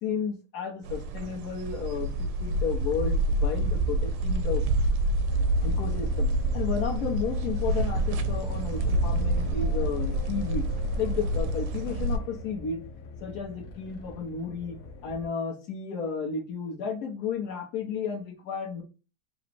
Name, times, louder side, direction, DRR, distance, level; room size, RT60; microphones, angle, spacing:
voice 1, 0.0-4.9 5.6-10.7 11.0-12.8 13.2-14.8 15.0-18.8, left 6 dB, 55° left, 1 dB, 1.4 m, -33 dB
sound 1, 0.8-12.2, right 1 dB, 85° right, 1.5 m, -27 dB
sound 2, 5.3-15.3, left 1 dB, 80° left, 0.8 m, -41 dB
4.0 x 2.3 x 4.6 m, 0.33 s
omnidirectional pair, 2.3 m